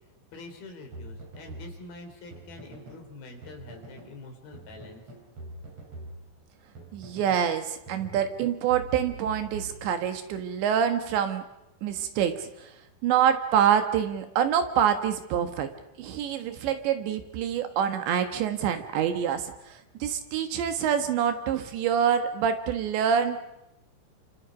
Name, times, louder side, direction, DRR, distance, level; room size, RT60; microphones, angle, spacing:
voice 1, 0.3-5.0, left 2 dB, 50° left, 4 dB, 5.2 m, -45 dB
sound 1, 0.9-3.1 3.4-4.2 4.5-7.5 7.9-10.3, right 2 dB, 35° right, 5.7 m, -44 dB
voice 2, 6.9-11.4 11.8-12.7 13.0-15.7 16.0-23.4, right 8 dB, 70° right, 8 dB, 3.6 m, -26 dB
29.0 x 26.5 x 5.2 m, 0.86 s
omnidirectional pair, 5.6 m